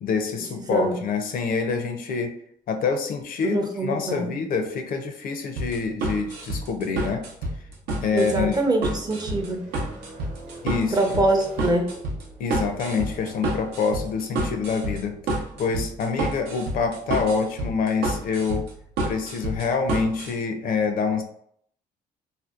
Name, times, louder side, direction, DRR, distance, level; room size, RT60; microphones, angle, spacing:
voice 1, 0.0-2.3 2.7-7.2 8.0-8.6 10.6-11.0 12.4-18.6 19.0-21.2, left 5 dB, 60° left, 6 dB, 0.4 m, -26 dB
voice 2, 0.6-1.0 3.4-4.4 8.1-9.7 10.9-11.9, right 2 dB, 25° right, 4 dB, 0.5 m, -24 dB
sound 1, 5.6-20.3, right 2 dB, 80° right, 0.7 m, -29 dB
sound 2, 7.5-17.7, equal, 45° right, 0.9 m, -44 dB
2.5 x 2.1 x 2.4 m, 0.66 s
supercardioid pair, 75°, 17 cm